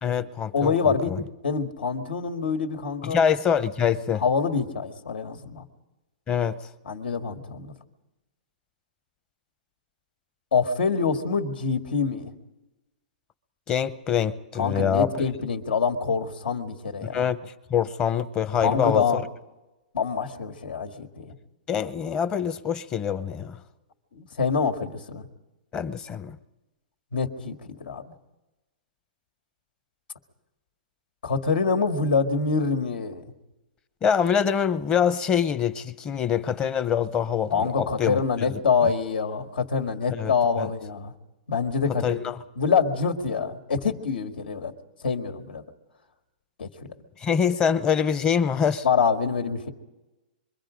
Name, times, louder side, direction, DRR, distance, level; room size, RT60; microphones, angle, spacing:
voice 1, 0.0-1.2 3.0-4.2 6.3-6.6 13.7-15.2 17.0-19.2 21.7-23.6 25.7-26.4 34.0-38.2 38.5-38.6 40.1-40.3 40.6-40.7 42.0-42.4 47.2-48.9, left 7 dB, 15° left, 0.7 m, -25 dB
voice 2, 0.5-1.2 1.4-3.2 4.2-5.6 6.9-7.7 10.5-12.3 14.6-17.2 18.6-19.2 19.9-21.3 24.1-25.3 27.1-28.1 31.2-33.2 37.5-41.1 41.5-42.2 42.6-44.7 45.0-45.6 46.6-46.7 48.8-49.7, left 5 dB, 85° left, 2.1 m, -25 dB
26.0 x 23.5 x 5.2 m
hypercardioid pair, 160°, 5 cm